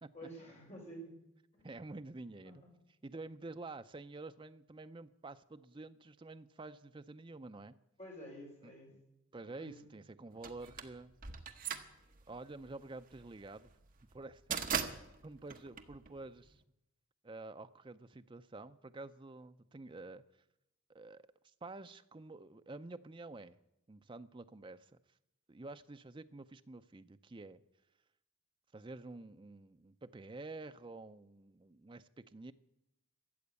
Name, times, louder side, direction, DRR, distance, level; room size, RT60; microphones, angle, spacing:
voice 1, 0.1-1.1 1.5-1.7 2.4-2.7 8.0-8.9 9.4-9.9, right 1 dB, 35° left, -1 dB, 4.7 m, -50 dB
voice 2, 1.6-2.6 3.0-7.7 8.6-8.7 9.3-11.2 12.3-13.7 14.1-14.6 15.2-16.6 17.2-20.2 20.9-21.2 21.6-23.6 23.9-24.9 25.5-27.6 28.7-32.5, right 2 dB, 25° right, 10 dB, 0.5 m, -49 dB
sound 1, 10.4-16.6, right 7 dB, 40° right, 0.9 m, -40 dB
13.5 x 7.9 x 8.2 m, 0.86 s
head